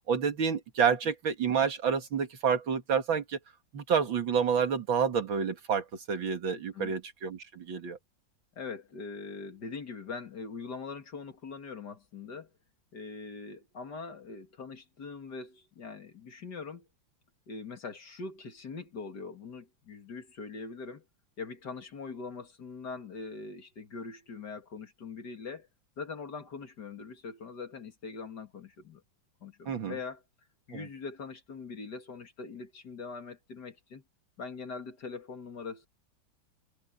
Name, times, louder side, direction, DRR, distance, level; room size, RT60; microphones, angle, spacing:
voice 1, 0.1-3.4 3.7-8.0 29.7-29.9 30.7-30.9, right 6 dB, 75° right, 2.7 m, -29 dB
voice 2, 8.6-12.5 12.9-16.9 17.5-21.0 21.4-25.7 26.0-29.0 29.4-30.2 30.7-34.0 34.4-35.9, left 4 dB, 55° left, 2.8 m, -42 dB
omnidirectional pair, 2.1 m